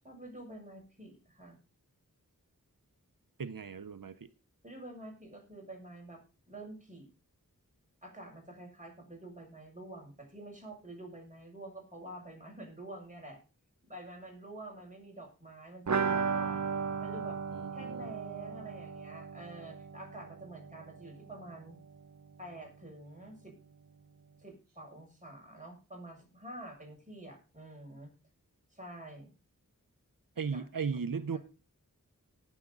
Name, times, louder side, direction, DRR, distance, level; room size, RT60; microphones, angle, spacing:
voice 1, 0.0-1.6 4.6-6.2 6.5-7.1 8.0-13.4 13.8-16.6 17.0-17.4 17.7-21.8 22.4-23.5 24.4-28.1 28.7-29.3 30.5-30.7 31.3-31.4, right 1 dB, 25° right, 6.4 m, -48 dB
voice 2, 3.4-4.3 17.5-18.1 30.4-31.4, right 6 dB, 80° right, 0.8 m, -36 dB
sound 1, 15.9-21.5 21.7-21.8 22.1-22.2, right 5 dB, 55° right, 0.8 m, -35 dB
18.5 x 7.3 x 3.9 m
wide cardioid pair, 45°, 33 cm